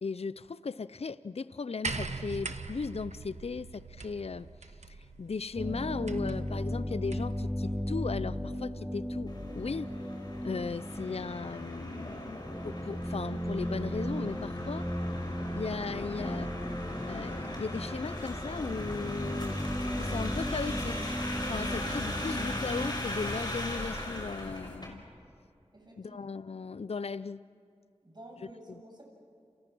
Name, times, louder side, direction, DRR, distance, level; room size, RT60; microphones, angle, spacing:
voice 1, 0.0-4.5 5.2-9.9 10.4-14.9 15.6-16.5 17.1-19.6 20.0-21.2 21.5-25.0 26.0-27.4 28.7-28.8, left 4 dB, 60° left, 16 dB, 0.6 m, -37 dB
sound 1, 1.8-7.4 8.5-8.6, right 4 dB, 80° right, 1.3 m, -41 dB
sound 2, 5.6-22.9, equal, 5° right, 5.6 m, -36 dB
sound 3, 9.3-24.9, left 1 dB, 40° left, 6.2 m, -39 dB
voice 2, 25.7-26.2 28.0-29.0, right 1 dB, 40° right, 0 dB, 7.7 m, -51 dB
30.0 x 28.5 x 6.2 m, 2.4 s
wide cardioid pair, 45°, 12 cm